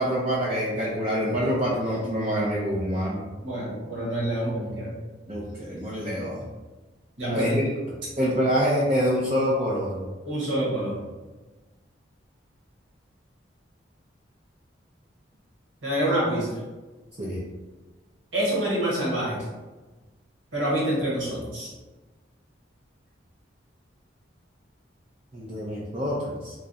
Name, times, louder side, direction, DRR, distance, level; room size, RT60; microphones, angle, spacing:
voice 1, 0.0-3.2 5.3-6.4 7.3-7.7 8.2-10.0 17.2-17.5 25.3-26.5, equal, 30° right, -8 dB, 0.5 m, -26 dB
voice 2, 3.4-4.9 7.2-7.6 10.2-11.0 15.8-16.5 18.3-19.4 20.5-21.7, right 1 dB, 85° right, -6 dB, 1.5 m, -26 dB
3.1 x 2.4 x 3.9 m, 1.2 s
head